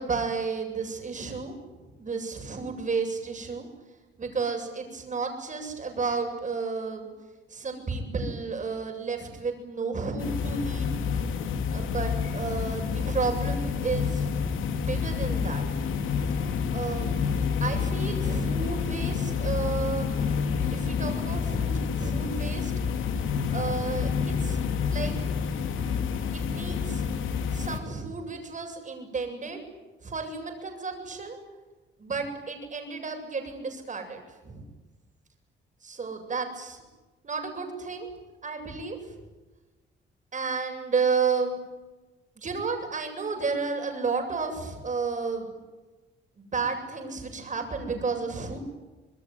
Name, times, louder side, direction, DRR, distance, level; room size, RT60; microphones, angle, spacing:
voice 1, 0.0-3.7 4.2-7.1 7.5-10.9 11.7-14.3 14.7-15.6 16.7-17.2 17.6-20.1 20.4-22.7 23.5-24.1 24.4-24.6 24.9-25.1 26.3-27.0 27.5-29.6 30.0-31.4 32.0-34.6 35.8-36.8 37.2-38.1 38.4-39.0 40.3-41.6 42.4-45.5 46.5-48.6, right 4 dB, 40° right, 4 dB, 7.9 m, -32 dB
sound 1, 10.2-27.8, left 6 dB, 80° left, 3.1 m, -28 dB
26.5 x 21.0 x 9.5 m, 1.2 s
cardioid pair, 90°, 20 cm